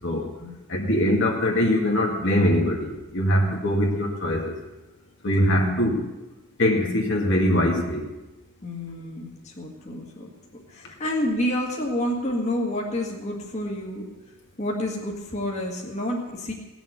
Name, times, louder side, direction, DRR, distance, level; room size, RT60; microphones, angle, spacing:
voice 1, 0.7-4.6 5.2-6.0 6.6-8.1, equal, 55° left, 0 dB, 2.1 m, -22 dB
voice 2, 8.6-10.3 10.7-14.0 14.6-16.5, left 1 dB, 30° left, -1 dB, 2.0 m, -29 dB
18.0 x 7.2 x 8.2 m, 1.1 s
head